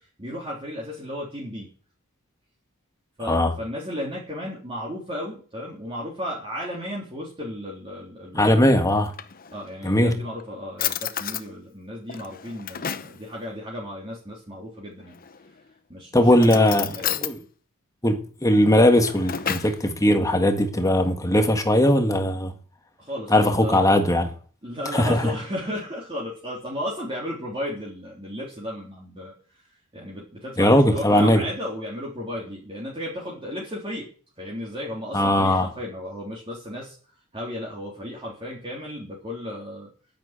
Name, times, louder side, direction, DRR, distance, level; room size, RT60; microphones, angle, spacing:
voice 1, 0.2-1.7 3.2-8.6 9.5-15.2 15.9-17.2 23.0-23.9 24.6-29.3 29.9-34.1 34.4-37.0 37.3-39.9, equal, 25° right, 3.6 m, -34 dB
voice 2, 8.4-9.1 9.8-10.2 16.1-17.4 18.0-22.5 23.3-24.3 24.9-25.3 30.6-31.4 35.1-35.7, left 1 dB, 15° left, 1.6 m, -19 dB
Drawer open or close, 8.9-9.8 10.4-10.5 10.8-11.5 12.1-13.2 15.1-15.6 16.4-17.4 18.7-19.8, left 9 dB, 40° left, 0.9 m, -31 dB
10.0 x 9.4 x 9.0 m
head